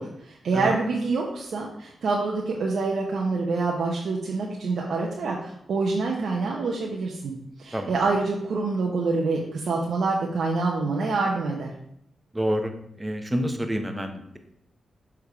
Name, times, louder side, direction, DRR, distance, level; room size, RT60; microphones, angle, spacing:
voice 1, 0.0-7.3 7.6-11.7, right 3 dB, 75° right, -2 dB, 0.9 m, -26 dB
voice 2, 12.3-12.7 13.0-14.4, equal, 15° right, 6 dB, 1.0 m, -28 dB
6.5 x 3.6 x 4.7 m, 0.72 s
cardioid pair, 60°, 0 cm